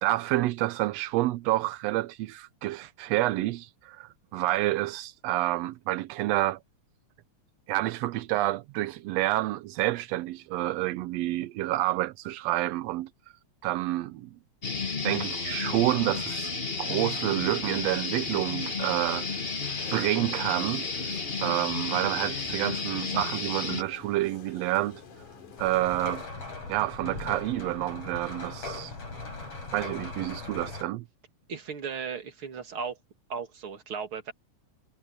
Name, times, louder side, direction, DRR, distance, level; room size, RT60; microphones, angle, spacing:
voice 1, 0.0-6.6 7.7-13.1 13.6-14.3 15.0-16.5 16.8-19.3 19.9-20.9 21.4-25.0 25.6-26.2 26.7-28.9 29.7-31.0, right 16 dB, 80° right, 1.6 m, -28 dB
sound 1, 14.6-23.8, left 4 dB, 30° left, 1.2 m, -32 dB
sound 2, 17.2-26.3, left 6 dB, 85° left, 4.8 m, -49 dB
sound 3, 25.6-30.8, left 2 dB, 50° left, 6.8 m, -39 dB
voice 2, 31.5-33.0 33.3-34.3, right 6 dB, 45° right, 3.0 m, -36 dB
omnidirectional pair, 3.4 m